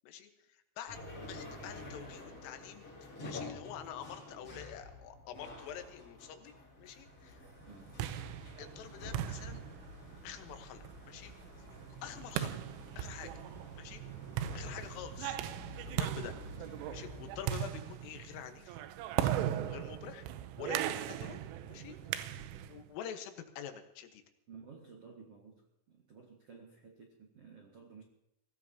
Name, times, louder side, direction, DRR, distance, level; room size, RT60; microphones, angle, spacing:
voice 1, 0.0-1.0 1.3-2.9 3.2-7.5 8.6-9.6 10.2-11.3 12.0-12.6 13.0-13.3 13.8-14.0 14.5-15.4 15.9-16.3 16.9-18.8 19.2-20.3 20.6-21.4 21.7-22.0 22.7-24.2, left 9 dB, 85° left, 7 dB, 3.9 m, -47 dB
sound 1, 0.9-17.5, left 2 dB, 30° left, 6.6 m, -49 dB
voice 2, 7.6-8.0 16.1-16.5 24.5-28.0, right 5 dB, 75° right, 0 dB, 1.3 m, -54 dB
sound 2, 7.6-22.8, right 11 dB, 90° right, 3.3 m, -39 dB
23.5 x 16.5 x 2.9 m, 0.82 s
omnidirectional pair, 5.7 m